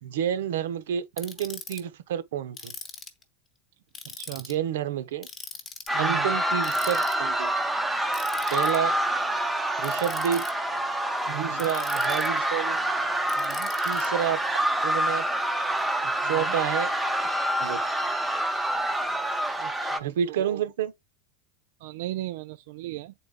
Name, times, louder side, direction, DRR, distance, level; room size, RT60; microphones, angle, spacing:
voice 1, 0.0-2.7 4.3-5.3 6.0-7.5 8.5-9.0 9.8-10.4 11.3-12.8 13.8-14.4 14.8-15.2 16.2-16.9 17.6-17.8 20.0-20.9, right 9 dB, 80° right, 0.9 m, -29 dB
Ratchet pawl, 1.2-1.8 2.6-3.2 3.9-4.5 5.2-5.9 6.6-7.1 8.1-8.8 9.8-10.5 11.6-12.4 13.3-14.1, left 4 dB, 15° left, 0.8 m, -41 dB
voice 2, 4.1-4.5 5.9-6.3 11.3-11.7 13.4-13.7 16.2-16.5 19.6-20.6 21.8-23.1, right 16 dB, 55° right, 0.3 m, -37 dB
sound 1, 5.9-20.0, right 1 dB, 5° right, 0.5 m, -27 dB
8.6 x 4.0 x 3.6 m
supercardioid pair, 175°, 0 cm